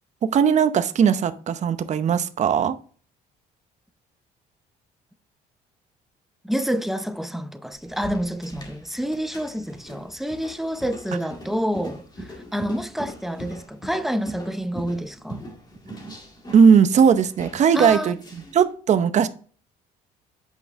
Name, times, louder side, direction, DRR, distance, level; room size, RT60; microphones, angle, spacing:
voice 1, 0.2-2.8 16.5-18.2 18.5-19.3, right 7 dB, 45° right, 0.7 m, -18 dB
voice 2, 6.4-15.5 17.7-18.1, equal, ahead, 0.7 m, -28 dB
sound 1, 7.7-18.6, right 1 dB, 25° left, 2.0 m, -41 dB
8.4 x 5.4 x 3.5 m
cardioid pair, 110°, 17 cm